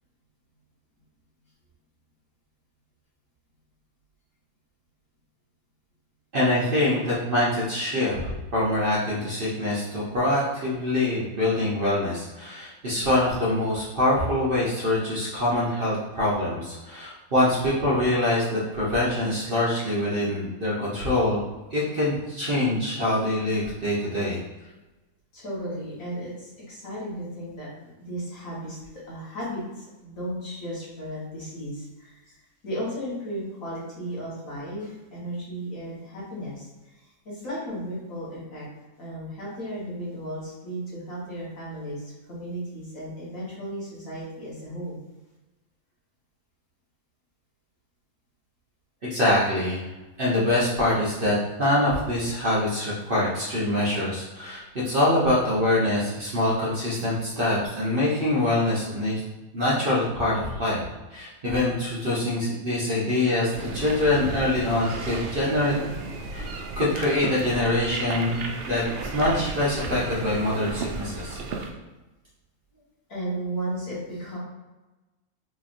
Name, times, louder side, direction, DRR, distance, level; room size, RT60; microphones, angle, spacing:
voice 1, 6.3-21.4 21.7-24.4 49.0-49.8 50.2-59.2 59.5-60.8 61.1-65.9 66.3-66.5 66.8-68.8 69.1-71.4, left 1 dB, 45° right, -7 dB, 0.9 m, -24 dB
voice 2, 25.3-27.7 28.0-32.3 32.6-38.7 39.0-45.0 72.7-72.8 73.1-74.4, equal, 65° left, -7 dB, 1.8 m, -35 dB
sound 1, 63.5-71.7, right 3 dB, 80° right, 0.5 m, -34 dB
3.9 x 3.0 x 2.5 m, 1.1 s
omnidirectional pair, 1.5 m